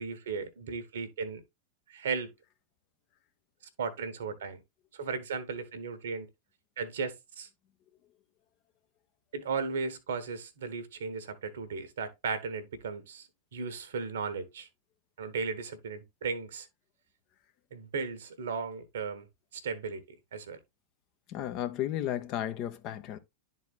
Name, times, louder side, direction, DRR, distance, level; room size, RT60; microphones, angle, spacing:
voice 1, 0.0-1.4 1.9-2.3 3.8-4.6 4.9-6.3 6.8-7.5 9.3-14.7 15.2-16.7 17.7-19.3 19.5-20.0 20.3-20.6, right 5 dB, 60° right, 1.2 m, -36 dB
voice 2, 21.3-23.2, left 11 dB, 40° left, 0.8 m, -33 dB
11.5 x 4.1 x 2.3 m
figure-of-eight pair, 90°, 0 cm